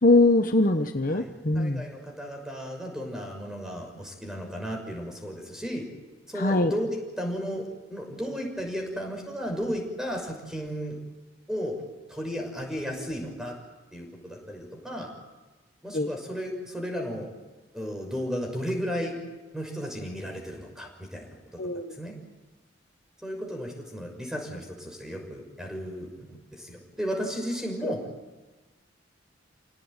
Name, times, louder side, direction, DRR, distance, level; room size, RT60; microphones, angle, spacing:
voice 1, 0.0-1.9 6.4-6.7 15.9-16.1 21.6-21.9 27.8-27.9, left 2 dB, 50° left, 6 dB, 1.2 m, -22 dB
voice 2, 1.1-5.9 6.3-11.0 11.5-11.7 12.1-13.6 13.9-15.1 15.8-17.3 17.7-19.2 19.5-21.6 21.9-22.1 23.2-28.1, equal, 5° right, 2 dB, 6.3 m, -34 dB
28.0 x 18.0 x 9.2 m, 1.2 s
head